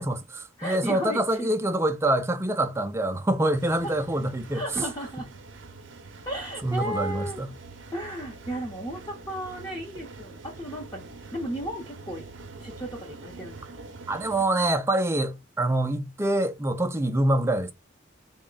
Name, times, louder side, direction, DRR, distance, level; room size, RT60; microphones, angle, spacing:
voice 1, 0.0-4.6 6.6-7.5 14.1-17.7, right 1 dB, 15° right, 0.4 m, -25 dB
voice 2, 0.6-1.5 4.5-5.3 6.3-7.4 7.9-12.2 12.6-13.6, equal, 20° left, 0.8 m, -34 dB
sound 1, 3.5-14.4, right 3 dB, 65° right, 0.6 m, -45 dB
3.5 x 2.1 x 3.8 m
head